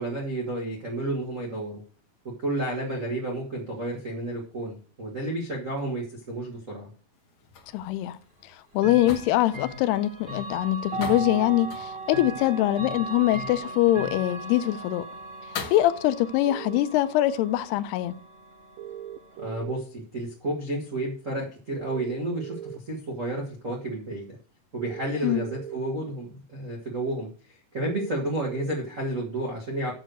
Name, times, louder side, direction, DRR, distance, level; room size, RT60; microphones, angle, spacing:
voice 1, 0.0-1.8 2.4-6.9 19.4-24.4 24.7-29.9, right 1 dB, 70° right, 0.7 m, -31 dB
sound 1, 7.1-15.9, left 6 dB, 70° left, 1.4 m, -43 dB
voice 2, 7.7-8.2 8.7-15.1 15.7-18.2 25.2-25.4, left 14 dB, 85° left, 2.6 m, -23 dB
Chime / Clock, 8.8-19.6, right 3 dB, 30° right, 1.2 m, -38 dB
sound 2, 16.5-16.8 18.8-19.8 21.8-22.8 24.8-25.8 27.8-28.7, right 11 dB, 85° right, 2.0 m, -39 dB
7.8 x 6.4 x 6.3 m
omnidirectional pair, 4.7 m